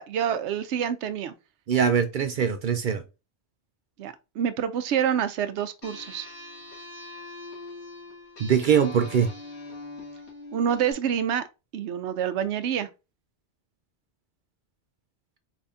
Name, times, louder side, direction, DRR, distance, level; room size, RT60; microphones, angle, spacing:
voice 1, 0.0-1.3 4.0-6.3 10.5-11.4 11.7-12.9, right 8 dB, 90° right, 0.9 m, -27 dB
voice 2, 1.7-3.0 8.4-9.3, right 7 dB, 60° right, 0.6 m, -22 dB
sound 1, 5.8-10.9, left 2 dB, 85° left, 2.2 m, -42 dB
4.9 x 3.5 x 2.6 m
omnidirectional pair, 1.1 m